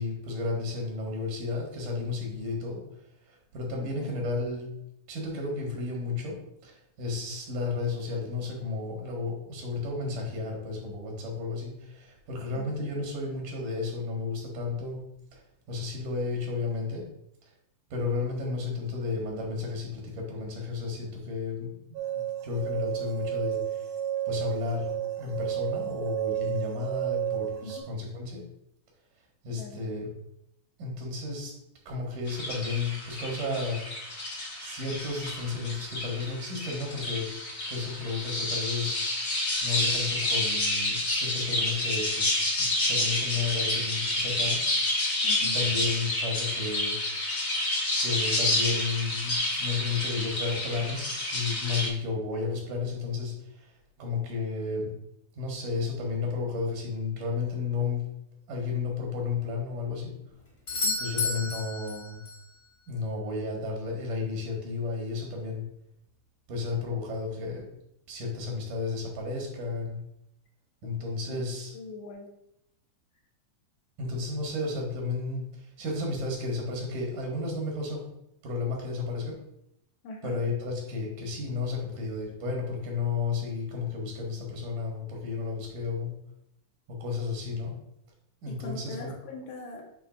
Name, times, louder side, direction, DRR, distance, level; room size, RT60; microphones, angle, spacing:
voice 1, 0.0-2.8 3.3-4.7 5.1-15.0 15.3-17.1 17.9-23.9 24.3-28.4 29.4-30.1 30.8-31.5 31.9-33.8 34.6-37.3 37.7-39.0 39.6-42.3 42.6-44.6 45.4-46.9 47.6-47.7 48.0-53.7 54.0-54.9 55.4-58.0 58.5-60.1 61.0-62.2 62.9-65.6 66.5-67.7 68.1-70.0 70.8-71.7 74.0-78.1 78.4-79.4 80.2-86.1 87.0-87.7 88.4-89.1, left 4 dB, 80° right, 0 dB, 3.3 m, -33 dB
sound 1, 21.9-27.8, right 12 dB, 65° right, 1.7 m, -32 dB
voice 2, 29.5-29.8 45.2-45.6 60.8-61.1 71.3-71.4 71.7-72.3 80.0-80.4 88.5-89.8, left 2 dB, 70° left, 0 dB, 2.6 m, -41 dB
sound 2, 32.3-51.9, left 1 dB, 55° left, 0.7 m, -29 dB
Doorbell, 60.7-62.5 66.6-66.7, left 3 dB, 25° left, 1.1 m, -31 dB
8.4 x 3.2 x 5.0 m, 0.77 s
omnidirectional pair, 3.6 m